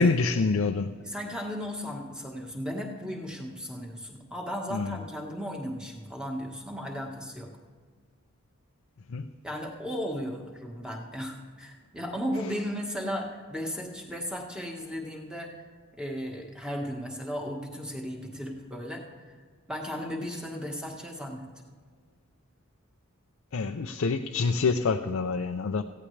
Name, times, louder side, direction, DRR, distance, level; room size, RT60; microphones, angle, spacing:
voice 1, 0.0-0.9 4.7-5.0 9.1-9.3 23.5-25.8, left 4 dB, 75° left, 7 dB, 0.5 m, -26 dB
voice 2, 1.0-7.5 9.4-15.5 16.0-19.3 19.7-21.5, equal, 5° right, 0 dB, 1.4 m, -35 dB
17.0 x 15.5 x 3.3 m, 1.5 s
head